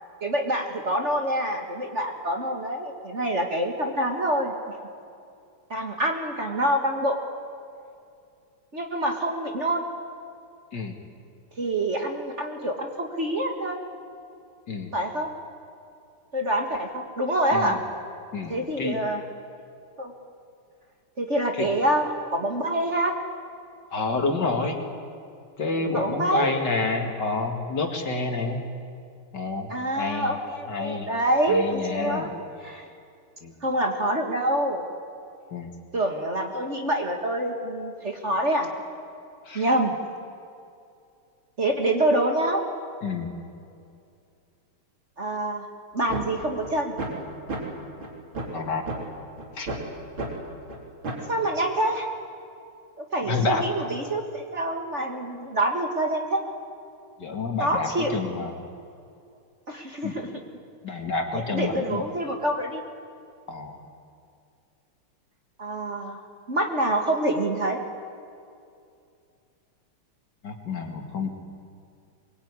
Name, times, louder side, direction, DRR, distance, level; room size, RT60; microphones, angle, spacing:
voice 1, 0.2-4.5 5.7-7.2 8.7-9.8 11.6-13.8 14.9-15.3 16.3-17.8 18.5-19.2 20.0-20.1 21.2-23.1 25.9-26.5 29.7-32.3 32.6-32.9 33.6-34.8 35.9-38.8 39.5-39.9 41.6-42.6 45.2-45.7 45.9-46.9 51.3-52.1 53.0-56.4 57.6-58.1 59.7-60.3 61.3-62.8 65.6-66.2 66.5-67.8, right 1 dB, 35° right, 3 dB, 1.9 m, -26 dB
voice 2, 18.3-19.0 21.6-21.7 23.9-24.8 25.6-28.6 29.3-30.3 30.7-31.1 31.5-32.3 33.4-33.5 35.5-35.7 39.5-39.6 43.0-43.3 48.5-48.9 49.6-49.7 53.3-53.6 57.2-58.5 60.0-60.1 60.8-62.0 63.5-63.8 70.4-71.3, left 3 dB, 50° left, 4 dB, 2.7 m, -28 dB
sound 1, 46.1-46.2 46.6-46.7 47.0-47.2 47.5-47.6 48.0-48.1 48.4-48.6 48.9-49.0 49.4-49.8 50.2-50.3 50.7-50.8 51.0-51.3, right 2 dB, 65° right, 4.5 m, -31 dB
23.5 x 22.0 x 9.7 m, 2.5 s
omnidirectional pair, 2.4 m